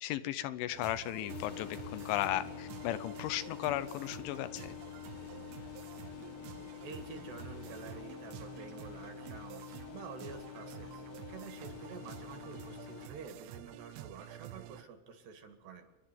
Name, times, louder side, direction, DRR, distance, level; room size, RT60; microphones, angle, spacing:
voice 1, 0.0-4.7, left 13 dB, 80° left, 13 dB, 3.1 m, -35 dB
sound 1, 0.7-14.8, right 10 dB, 90° right, 3.5 m, -49 dB
sound 2, 1.3-13.1, left 14 dB, 60° left, 2.3 m, -47 dB
voice 2, 6.8-15.9, right 5 dB, 60° right, 7 dB, 3.7 m, -49 dB
28.5 x 11.0 x 9.4 m, 1.1 s
omnidirectional pair, 5.7 m